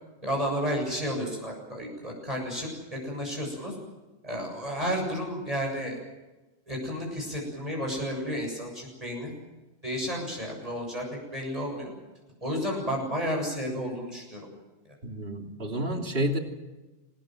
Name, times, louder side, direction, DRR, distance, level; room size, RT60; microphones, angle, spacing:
voice 1, 0.2-3.8 4.2-6.0 6.7-9.3 9.8-11.9 12.4-14.4, equal, 35° right, -1 dB, 7.5 m, -32 dB
voice 2, 15.0-16.4, right 1 dB, 60° right, 3 dB, 3.3 m, -30 dB
26.5 x 20.0 x 7.7 m, 1.1 s
omnidirectional pair, 1.1 m